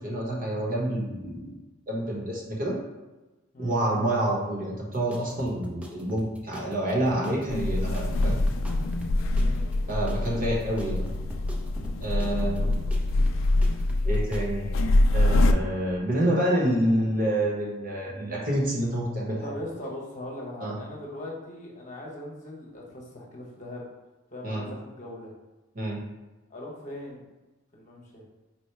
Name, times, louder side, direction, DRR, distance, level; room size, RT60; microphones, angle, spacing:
voice 1, 0.0-1.5 1.9-2.8 3.6-8.4 9.9-11.1 12.0-12.7 14.0-14.7 15.1-19.4 20.6-20.7 24.4-24.6 25.7-26.0, right 1 dB, 45° right, -3 dB, 0.9 m, -28 dB
sound 1, 4.9-14.4, right 1 dB, 5° right, 0.3 m, -45 dB
sound 2, 7.5-15.5, left 2 dB, 70° left, 0.3 m, -24 dB
voice 2, 19.4-23.8 24.3-25.4 26.5-27.2 27.7-28.2, left 1 dB, 35° left, -3 dB, 0.9 m, -40 dB
4.4 x 2.0 x 4.4 m, 1.1 s
head